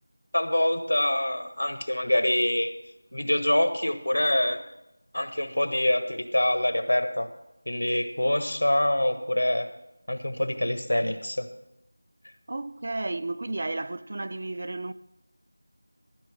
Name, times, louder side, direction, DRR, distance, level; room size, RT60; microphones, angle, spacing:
voice 1, 0.3-2.7 3.1-4.6 5.1-7.3 7.7-9.7 10.1-11.5, left 1 dB, 90° left, 1.3 m, -25 dB
voice 2, 12.5-14.9, right 2 dB, 40° right, 0.4 m, -32 dB
14.0 x 6.4 x 5.9 m
figure-of-eight pair, 175°, 0 cm